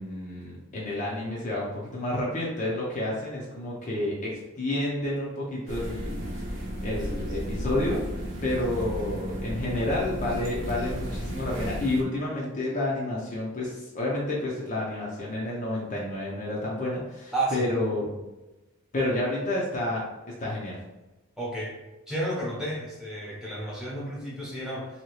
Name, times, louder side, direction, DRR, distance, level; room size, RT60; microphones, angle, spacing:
voice 1, 0.0-6.5 6.8-8.0 8.4-18.3 18.9-20.0 20.4-20.8, left 1 dB, 35° left, -5 dB, 0.6 m, -30 dB
sound 1, 5.7-12.0, equal, 60° right, 0.7 m, -33 dB
voice 2, 17.3-17.7 21.4-21.7 22.1-24.9, right 1 dB, ahead, -7 dB, 0.8 m, -31 dB
2.8 x 2.8 x 3.1 m, 1.1 s
head